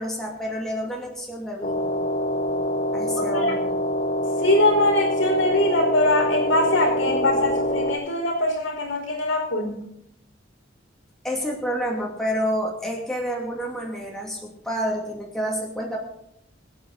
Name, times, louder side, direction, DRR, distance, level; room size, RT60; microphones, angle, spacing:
voice 1, 0.0-1.9 2.9-3.7 11.2-16.0, equal, ahead, -3 dB, 2.5 m, -29 dB
sound 1, 1.6-8.0, equal, 45° left, 1.2 m, -25 dB
voice 2, 3.2-3.5 4.4-9.8, left 1 dB, 90° left, -9 dB, 4.2 m, -22 dB
25.0 x 8.7 x 4.1 m, 0.75 s
head